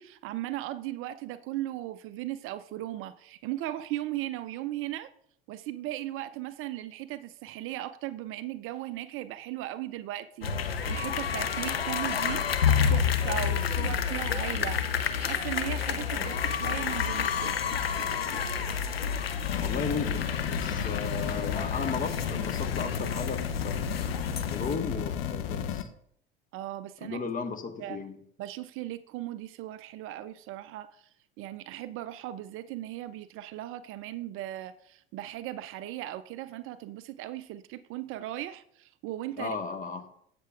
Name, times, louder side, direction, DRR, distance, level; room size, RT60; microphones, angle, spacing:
voice 1, 0.0-5.1 5.5-17.6 26.5-27.2 27.8-28.0 28.4-39.6, right 14 dB, 45° right, 14 dB, 0.5 m, -37 dB
sound 1, 10.4-24.7, left 7 dB, 90° left, 0.7 m, -30 dB
sound 2, 19.4-25.8, left 8 dB, 65° left, 0.9 m, -33 dB
voice 2, 19.6-25.9 27.0-28.2 39.4-40.1, left 5 dB, 25° left, 7 dB, 1.4 m, -35 dB
16.5 x 6.7 x 2.4 m, 0.67 s
figure-of-eight pair, 70°, 29 cm